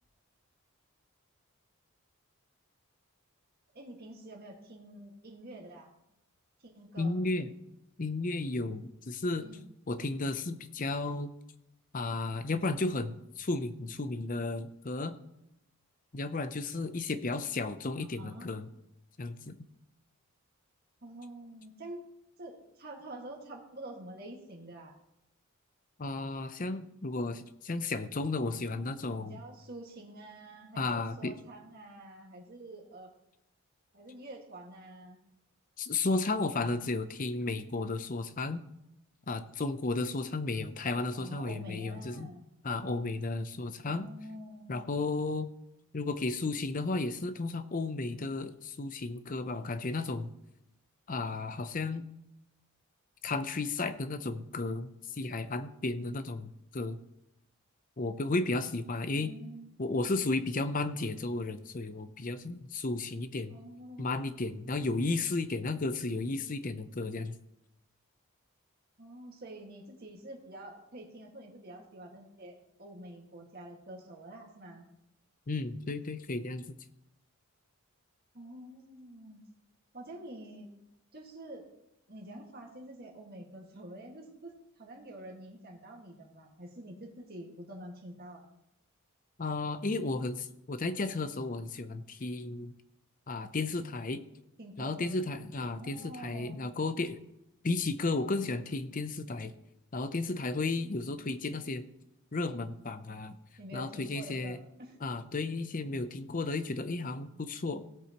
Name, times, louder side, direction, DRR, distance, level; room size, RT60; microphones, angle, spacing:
voice 1, 3.7-5.9 6.6-7.2 9.4-9.7 18.0-18.5 21.0-22.0 22.4-25.0 29.2-33.1 33.9-35.2 41.1-42.5 43.8-44.8 59.2-60.1 63.5-64.4 69.0-74.9 78.3-79.4 79.9-80.7 81.1-81.7 82.1-84.5 84.8-88.4 94.6-95.2 95.7-96.6 103.6-105.0, right 1 dB, 45° right, 0 dB, 1.9 m, -47 dB
voice 2, 7.0-7.5 8.0-9.5 9.9-11.3 11.9-15.1 16.1-18.7 19.2-19.6 26.0-29.4 30.8-31.4 35.8-38.6 39.3-42.3 42.6-44.1 44.7-45.5 45.9-50.3 51.1-52.1 53.2-57.0 58.0-59.3 59.8-63.6 64.0-67.4 75.5-76.7 89.4-92.7 93.3-94.2 94.8-97.2 97.6-99.5 99.9-101.9 102.3-103.4 103.7-104.6 105.0-107.8, left 3 dB, 40° left, 11 dB, 0.6 m, -33 dB
17.0 x 8.3 x 3.0 m, 0.84 s
head